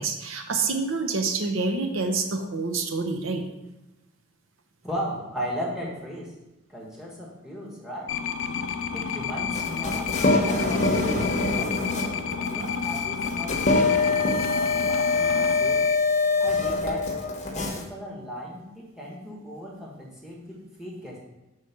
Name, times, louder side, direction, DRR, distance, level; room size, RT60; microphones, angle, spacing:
voice 1, 0.0-3.4, right 4 dB, 70° right, 5 dB, 0.7 m, -27 dB
voice 2, 4.8-6.3 6.7-8.1 8.9-10.1 10.4-11.8 12.5-15.9 16.4-17.0 17.5-21.2, equal, 5° right, -4 dB, 1.2 m, -36 dB
sound 1, 8.1-16.0, left 6 dB, 70° left, 0.4 m, -30 dB
sound 2, 9.5-17.8, left 3 dB, 35° left, 0.9 m, -24 dB
4.8 x 4.6 x 5.8 m, 0.99 s
head